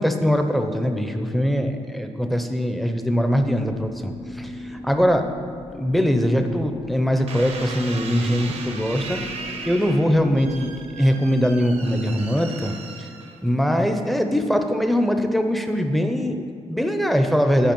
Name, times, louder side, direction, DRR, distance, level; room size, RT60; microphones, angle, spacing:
voice 1, 0.0-5.2 5.7-9.2 9.6-12.7 13.0-13.1 13.4-17.7, equal, ahead, 6 dB, 0.7 m, -22 dB
sound 1, 3.2-12.2, left 1 dB, 75° left, 1.5 m, -41 dB
sound 2, 7.3-13.7 14.3-14.8, right 4 dB, 75° right, 1.0 m, -37 dB
10.5 x 4.8 x 5.4 m, 2.3 s
cardioid pair, 85°, 12 cm